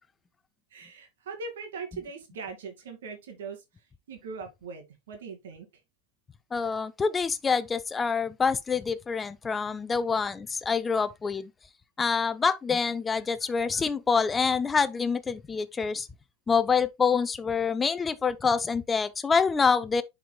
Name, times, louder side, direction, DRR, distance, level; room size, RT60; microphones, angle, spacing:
voice 1, 0.7-3.6 4.1-5.7, right 4 dB, 85° right, 2.2 m, -40 dB
voice 2, 6.5-11.5 12.0-16.1 16.5-20.0, left 5 dB, 20° left, 0.5 m, -26 dB
10.0 x 4.7 x 2.2 m
supercardioid pair, 115°, 0 cm